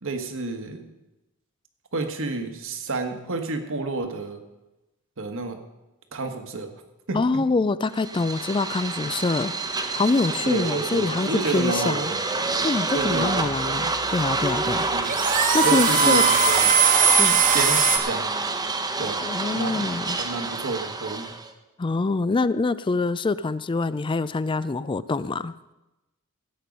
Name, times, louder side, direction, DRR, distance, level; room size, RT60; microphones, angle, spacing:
voice 1, 0.0-0.9 1.9-4.4 5.2-5.6 6.1-6.7 7.1-7.4 10.4-12.2 12.9-13.6 14.9-15.2 15.6-16.7 17.5-18.3 19.0-19.2 19.5-19.8 20.2-21.3, right 3 dB, 60° right, 1.4 m, -30 dB
voice 2, 7.1-12.1 12.6-14.9 15.5-16.2 17.2-17.4 19.2-20.2 21.8-25.5, left 3 dB, 20° left, 0.3 m, -25 dB
sound 1, 7.9-21.5, right 3 dB, 20° right, 0.9 m, -28 dB
sound 2, 13.0-18.0, right 6 dB, 35° right, 1.2 m, -20 dB
15.5 x 8.5 x 5.3 m
head